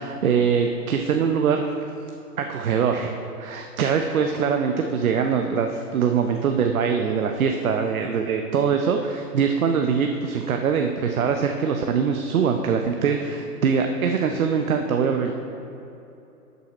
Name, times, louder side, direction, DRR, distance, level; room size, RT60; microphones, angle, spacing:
voice 1, 0.0-1.7 2.4-15.3, right 6 dB, 60° right, 4 dB, 0.7 m, -23 dB
12.5 x 5.6 x 4.3 m, 2.8 s
hypercardioid pair, 150°, 47 cm